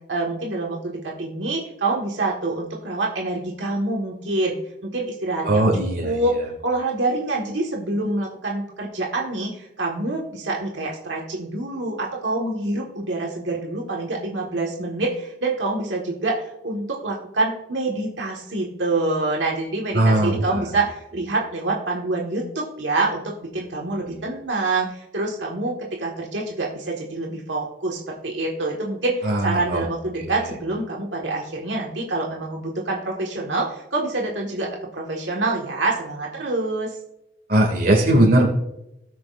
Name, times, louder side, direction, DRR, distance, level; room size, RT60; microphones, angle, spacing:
voice 1, 0.1-4.5 4.8-5.7 6.0-34.7 34.9-37.0, right 2 dB, 90° right, -1 dB, 1.6 m, -26 dB
voice 2, 5.4-6.2 19.9-20.6 29.2-29.8 30.2-30.3 37.5-38.5, right 1 dB, 55° right, 1 dB, 2.3 m, -19 dB
18.0 x 6.2 x 2.5 m, 0.85 s
head